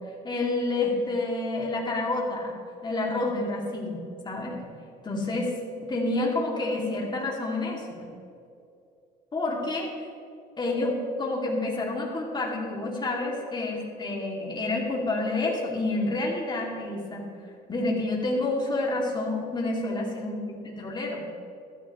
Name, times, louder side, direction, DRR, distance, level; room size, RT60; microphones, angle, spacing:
voice 1, 0.2-2.5 2.8-4.7 5.0-5.5 5.8-8.0 9.3-9.9 10.6-17.3 17.7-20.3 20.6-21.3, left 2 dB, 25° left, -2 dB, 2.7 m, -29 dB
14.5 x 13.0 x 3.2 m, 2.5 s
cardioid pair, 110°, 17 cm